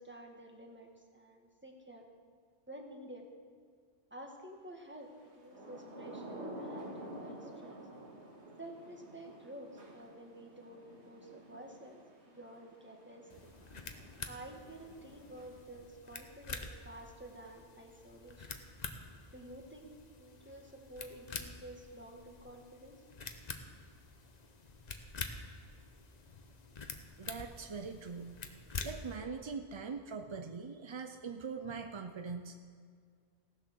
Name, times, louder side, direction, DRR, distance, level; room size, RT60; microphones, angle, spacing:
voice 1, 0.0-2.1 2.7-3.3 4.1-7.8 8.6-13.5 14.2-18.6 19.3-19.9 20.2-23.0 23.5-23.7, right 1 dB, 10° right, 1 dB, 1.4 m, -51 dB
Thunder / Rain, 5.3-15.8, right 1 dB, 90° right, 2.1 m, -50 dB
sound 1, 13.3-29.2, left 4 dB, 40° left, 0.9 m, -47 dB
voice 2, 27.2-28.3 28.8-32.5, right 5 dB, 40° right, 6 dB, 0.4 m, -42 dB
17.0 x 7.0 x 6.3 m, 2.1 s
omnidirectional pair, 1.1 m